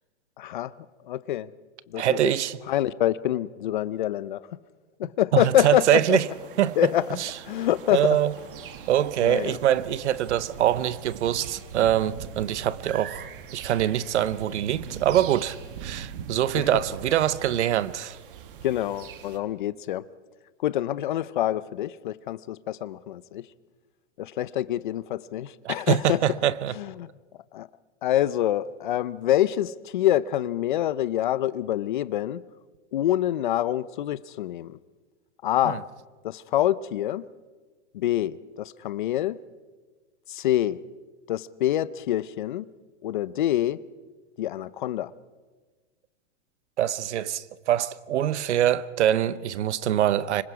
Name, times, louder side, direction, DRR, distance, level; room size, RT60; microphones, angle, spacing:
voice 1, 0.4-0.7 1.0-1.5 1.9-2.3 2.7-4.5 5.0-6.2 6.8-7.2 7.4-8.2 9.2-9.6 16.5-16.7 18.6-20.0 20.6-23.5 24.2-26.2 26.8-27.1 27.5-27.7 28.0-32.4 32.9-34.8 35.4-35.8 36.2-37.3 37.9-39.4 40.3-40.8 41.3-42.7 43.0-43.8 44.4-45.1, left 12 dB, 45° left, 0.6 m, -26 dB
voice 2, 2.0-2.6 5.3-6.3 6.6-6.9 7.2-7.3 7.9-8.3 8.9-13.3 13.5-18.2 25.6-26.7 35.6-35.8 46.8-50.4, right 11 dB, 70° right, 0.9 m, -24 dB
sound 1, 5.5-19.4, right 7 dB, 45° right, 1.6 m, -42 dB
25.5 x 21.5 x 4.8 m
supercardioid pair, 175°, 36 cm